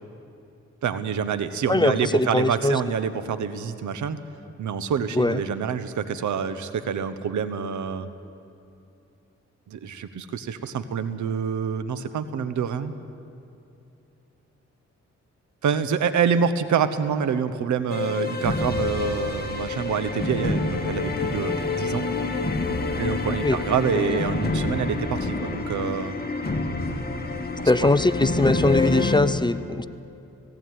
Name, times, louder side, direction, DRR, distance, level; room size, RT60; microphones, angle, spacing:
voice 1, 0.8-4.2 4.6-8.1 9.7-12.9 15.6-22.1 22.9-26.2 27.6-27.9, right 7 dB, 85° right, 12 dB, 1.1 m, -27 dB
voice 2, 1.7-2.8 5.2-5.4 23.4-23.6 23.9-24.2 27.6-29.9, left 2 dB, 15° left, 14 dB, 0.6 m, -21 dB
sound 1, 17.9-29.2, left 3 dB, 35° left, 2.2 m, -27 dB
17.5 x 16.5 x 9.4 m, 2.7 s
cardioid pair, 70°, 29 cm